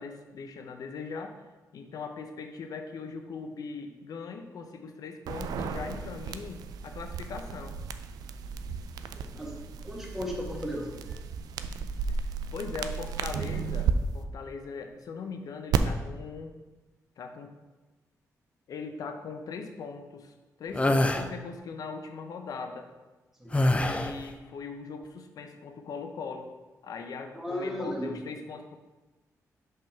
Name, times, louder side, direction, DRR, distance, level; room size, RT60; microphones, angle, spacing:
voice 1, 0.0-1.3 1.7-7.8 12.1-12.2 12.5-16.5 17.2-17.5 18.7-22.9 23.8-26.5 26.8-28.8, left 5 dB, 70° left, 5 dB, 0.7 m, -40 dB
sound 1, 5.3-13.9 15.7-15.8, right 7 dB, 85° right, 0.3 m, -34 dB
voice 2, 9.1-11.2 23.4-23.6 27.3-28.2, left 1 dB, 5° right, -1 dB, 1.7 m, -36 dB
sound 2, 20.7-21.3 23.5-24.2, left 1 dB, 20° left, 0.5 m, -24 dB
5.4 x 3.7 x 5.8 m, 1.2 s
cardioid pair, 65°, 6 cm